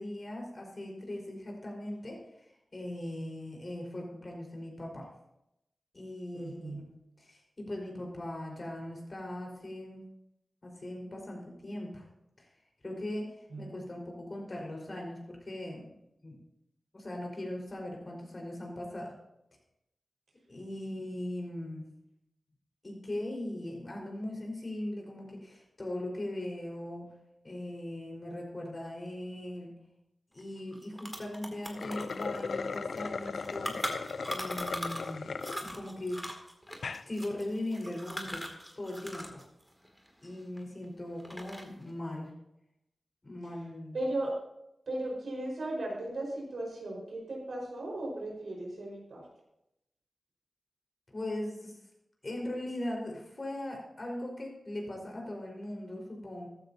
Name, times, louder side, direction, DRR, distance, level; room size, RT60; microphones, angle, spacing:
voice 1, 0.0-5.1 5.9-6.8 7.2-10.0 10.6-12.0 12.4-12.5 12.8-13.3 13.6-15.9 16.2-16.3 16.9-19.1 20.5-21.8 22.8-27.0 27.4-29.7 30.3-33.7 34.3-35.3 35.6-36.2 37.0-38.4 38.7-39.3 40.2-42.3 43.2-44.0 51.1-51.8 52.2-56.5, left 1 dB, 45° left, 0 dB, 4.7 m, -39 dB
voice 2, 6.3-6.9 13.5-13.8 43.9-44.3 44.9-49.2, right 1 dB, 80° right, -2 dB, 4.9 m, -36 dB
sound 1, 30.4-30.5 30.7-35.1 35.4-39.4 39.7-40.8 41.2-41.8, equal, ahead, 2.6 m, -40 dB
sound 2, 31.7-35.6 36.1-36.2 36.7-37.0, left 4 dB, 80° left, 0.4 m, -37 dB
14.5 x 12.5 x 2.8 m, 0.84 s
cardioid pair, 55°, 0 cm